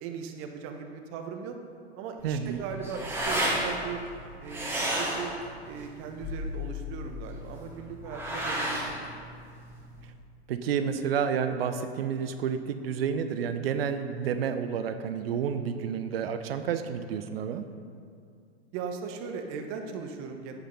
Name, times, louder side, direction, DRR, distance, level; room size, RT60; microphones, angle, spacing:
voice 1, 0.0-1.6 1.9-4.0 4.4-5.3 5.6-9.1 18.7-20.6, right 6 dB, 40° right, 5 dB, 1.4 m, -38 dB
sound 1, 2.2-10.1, equal, 5° right, 2.6 m, -33 dB
voice 2, 2.2-2.6 10.5-17.6, right 7 dB, 60° right, 9 dB, 0.9 m, -30 dB
10.0 x 8.6 x 5.4 m, 2.3 s
hypercardioid pair, 100°, 33 cm